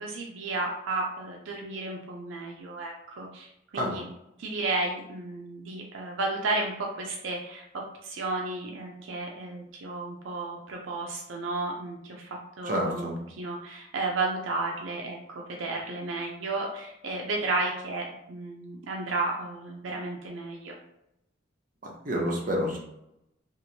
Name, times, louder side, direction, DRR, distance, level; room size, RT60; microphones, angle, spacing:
voice 1, 0.0-4.0 4.4-7.6 8.0-13.1 13.4-20.7, right 2 dB, 75° right, 0 dB, 0.5 m, -33 dB
voice 2, 12.6-13.1 21.8-22.8, equal, 40° right, -2 dB, 0.7 m, -29 dB
2.8 x 2.5 x 2.8 m, 0.82 s
head